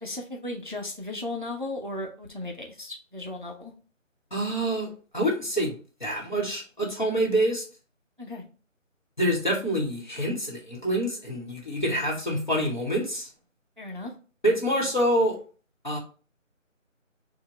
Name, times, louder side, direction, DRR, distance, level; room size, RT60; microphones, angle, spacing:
voice 1, 0.0-3.7 8.2-8.4 13.8-14.1, left 2 dB, 40° right, 2 dB, 0.5 m, -36 dB
voice 2, 4.3-5.7 6.0-7.6 9.2-13.3 14.4-15.4 15.8-16.0, right 1 dB, 35° left, -2 dB, 0.9 m, -26 dB
4.5 x 2.1 x 3.7 m, 0.38 s
figure-of-eight pair, 180°, 39 cm